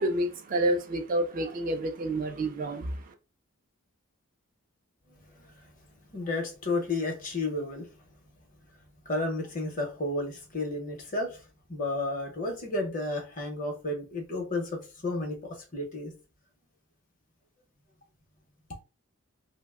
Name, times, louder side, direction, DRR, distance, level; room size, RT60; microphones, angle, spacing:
voice 1, 0.0-2.9, right 1 dB, 40° right, 0.3 m, -29 dB
voice 2, 6.1-7.9 9.1-11.4 11.7-16.1, left 2 dB, 40° left, 0.7 m, -32 dB
2.6 x 2.0 x 3.5 m
head